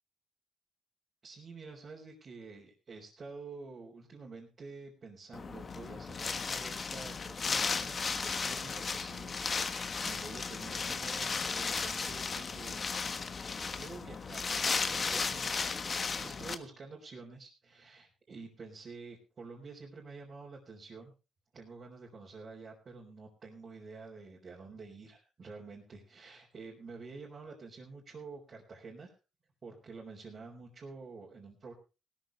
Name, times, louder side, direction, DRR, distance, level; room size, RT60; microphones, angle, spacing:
voice 1, 1.2-12.8 13.7-15.6 16.2-21.1 21.5-29.1 29.6-31.7, right 4 dB, 45° right, -3 dB, 4.2 m, -49 dB
Wind, 5.3-16.5, left 5 dB, 40° left, 1.4 m, -35 dB
17.5 x 13.0 x 3.4 m, 0.31 s
cardioid pair, 90°, 0 cm